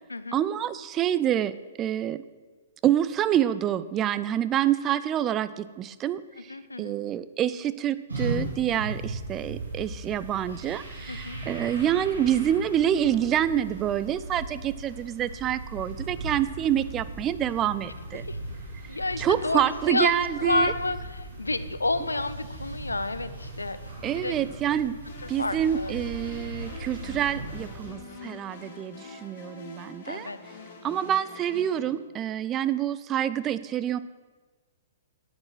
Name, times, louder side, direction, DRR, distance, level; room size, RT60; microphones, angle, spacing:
voice 1, 0.3-1.5 1.8-2.2 2.8-6.2 6.8-18.3 19.2-20.7 24.0-25.0 25.3-30.3 30.8-34.0, right 10 dB, 25° right, 15 dB, 0.4 m, -27 dB
voice 2, 6.5-7.0 11.1-11.4 18.2-18.4 18.9-24.3 25.2-25.9 30.1-30.4, left 2 dB, 85° left, 13 dB, 0.6 m, -30 dB
sound 1, 8.1-27.9, right 2 dB, 80° right, 3.9 m, -38 dB
sound 2, 25.0-31.9, left 3 dB, 50° left, 3.2 m, -45 dB
9.5 x 8.8 x 6.2 m, 1.3 s
figure-of-eight pair, 115°, 0 cm